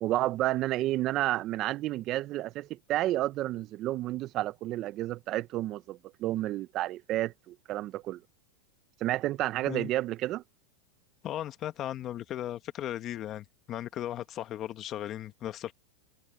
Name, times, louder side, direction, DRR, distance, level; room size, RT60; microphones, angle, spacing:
voice 1, 0.0-8.2 9.0-10.4, right 15 dB, 35° right, 0.6 m, -31 dB
voice 2, 11.2-15.7, left 12 dB, 35° left, 1.4 m, -36 dB
supercardioid pair, 135°, 0 cm